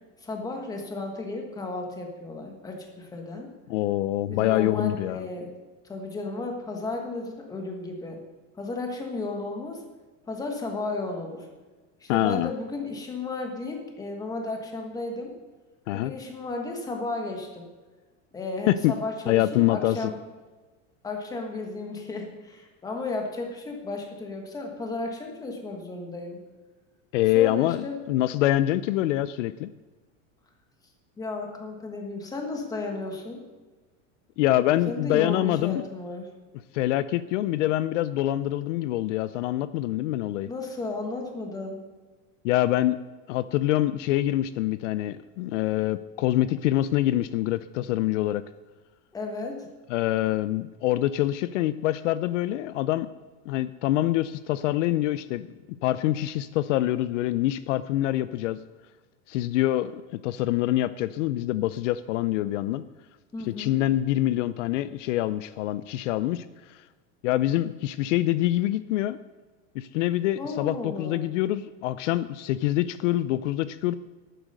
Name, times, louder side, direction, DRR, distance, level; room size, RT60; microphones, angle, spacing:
voice 1, 0.2-3.5 4.3-5.5 5.9-8.2 8.6-9.8 10.3-11.5 12.0-15.3 15.9-17.7 18.3-20.2 21.0-26.4 27.3-27.9 31.2-33.4 34.9-36.3 40.4-41.8 49.1-49.6 63.3-63.8 70.4-71.2, left 3 dB, 10° left, 2 dB, 1.4 m, -34 dB
voice 2, 3.7-5.2 12.1-12.5 15.9-16.1 18.7-18.9 19.3-20.1 27.1-29.7 34.4-35.8 36.7-40.5 42.4-43.0 43.3-48.4 49.9-53.1 53.5-55.5 55.8-58.6 59.3-62.8 63.5-66.8 67.2-69.2 69.7-73.9, left 14 dB, 70° left, 15 dB, 0.6 m, -25 dB
11.0 x 9.1 x 6.6 m, 1.3 s
supercardioid pair, 175°, 38 cm